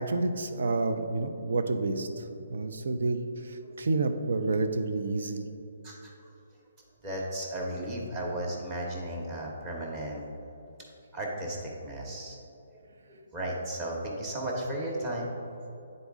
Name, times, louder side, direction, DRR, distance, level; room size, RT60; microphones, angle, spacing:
voice 1, 0.0-2.2 2.5-5.5, right 3 dB, 70° right, 7 dB, 0.6 m, -29 dB
voice 2, 7.0-10.2 11.1-12.4 12.7-12.8 13.1-15.3, right 1 dB, 20° right, -2 dB, 1.0 m, -35 dB
9.4 x 4.1 x 3.6 m, 2.8 s
hypercardioid pair, 165°, 0 cm